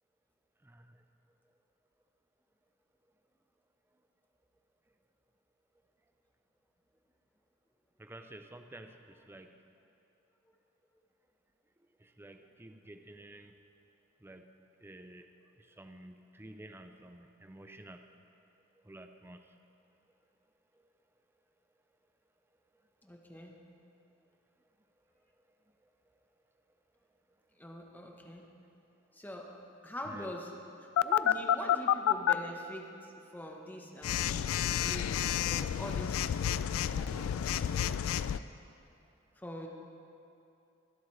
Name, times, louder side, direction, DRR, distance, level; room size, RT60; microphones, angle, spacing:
voice 1, 8.0-8.9 9.3-9.5 12.2-13.5 14.2-14.4 14.8-15.3 15.8-18.0 18.9-19.4 30.1-30.3, right 1 dB, 10° right, 6 dB, 0.4 m, -50 dB
voice 2, 23.0-23.6 27.6-28.5 29.1-36.3 36.9-37.5 39.4-39.7, equal, 10° left, 1 dB, 1.0 m, -44 dB
Telephone, 31.0-32.3 34.0-38.4, left 9 dB, 85° left, 0.3 m, -29 dB
23.0 x 8.0 x 3.2 m, 2.7 s
head